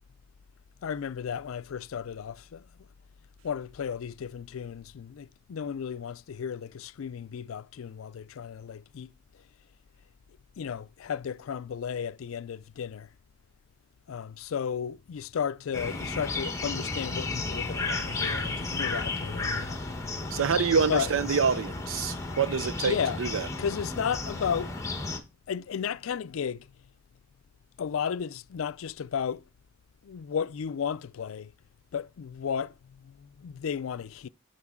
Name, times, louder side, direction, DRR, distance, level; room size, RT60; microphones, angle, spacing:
voice 1, 0.8-2.6 3.4-9.1 10.6-13.1 14.1-19.8 20.9-21.1 22.8-23.2 23.6-24.7 25.5-26.7 27.8-29.4 30.0-31.5 31.9-34.3, left 7 dB, 85° left, 0.4 m, -34 dB
sound 1, 15.7-25.2, left 3 dB, 15° left, 1.1 m, -33 dB
voice 2, 20.3-23.5, right 6 dB, 75° right, 0.5 m, -27 dB
11.0 x 5.2 x 3.6 m
head